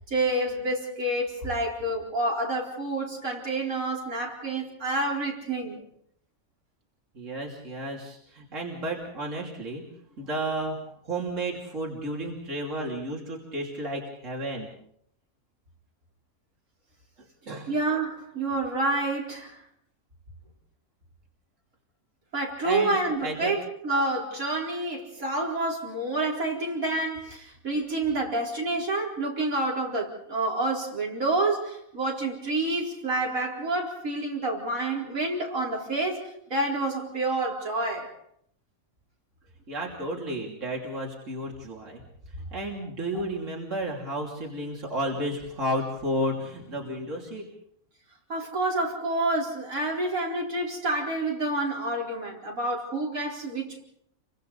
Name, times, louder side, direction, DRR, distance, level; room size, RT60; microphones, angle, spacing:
voice 1, 0.1-5.8 17.7-19.6 22.3-38.1 48.3-53.8, right 2 dB, 90° right, 4.9 m, -28 dB
voice 2, 7.2-9.8 10.2-10.8 11.1-14.7 17.5-17.7 22.6-23.5 39.7-42.0 42.5-47.5, right 1 dB, 65° right, 3.4 m, -32 dB
30.0 x 24.5 x 4.1 m
omnidirectional pair, 1.4 m